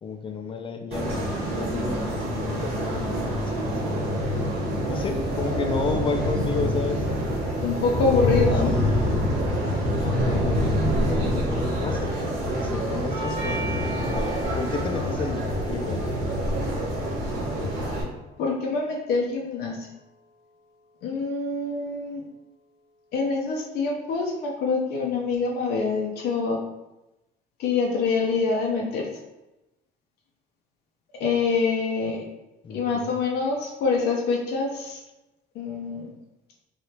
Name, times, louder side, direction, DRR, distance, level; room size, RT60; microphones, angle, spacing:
voice 1, 0.0-3.3 3.6-4.2 4.9-7.0 8.1-9.4 10.0-10.7 11.1-12.1 12.5-16.1 32.6-33.2, left 4 dB, 30° left, 5 dB, 0.4 m, -32 dB
sound 1, 0.9-18.0, equal, 70° right, 1.0 m, -26 dB
voice 2, 7.6-8.7 18.4-19.8 21.0-22.2 23.1-26.6 27.6-29.0 31.2-32.2 32.7-35.0 35.6-36.1, left 4 dB, 75° left, -1 dB, 0.6 m, -25 dB
Doorbell, 13.1-21.2, right 1 dB, 45° right, 1.0 m, -41 dB
3.4 x 2.4 x 2.8 m, 0.98 s
cardioid pair, 110°, 17 cm